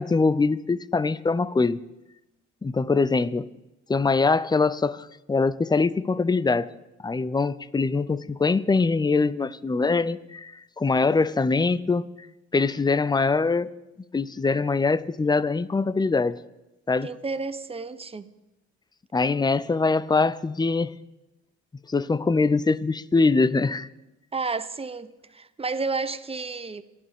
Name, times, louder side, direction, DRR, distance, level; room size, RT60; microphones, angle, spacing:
voice 1, 0.0-1.8 2.6-3.5 3.9-6.7 7.0-12.1 12.5-13.7 14.1-16.4 16.9-17.1 19.1-20.9 21.9-23.9, left 4 dB, 15° left, 0.5 m, -23 dB
voice 2, 17.0-18.3 24.3-26.8, right 4 dB, 20° right, 0.9 m, -31 dB
25.5 x 11.0 x 3.6 m
cardioid pair, 90°, 30 cm